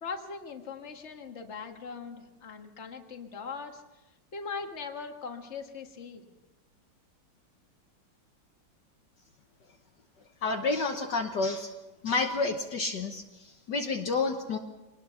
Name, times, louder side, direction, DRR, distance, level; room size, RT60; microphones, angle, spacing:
voice 1, 0.0-3.8 4.3-6.3, left 5 dB, 35° left, 4 dB, 1.8 m, -40 dB
voice 2, 10.4-11.7 12.0-14.6, left 3 dB, 60° left, 3 dB, 1.7 m, -30 dB
23.5 x 20.0 x 5.7 m, 1.1 s
omnidirectional pair, 2.2 m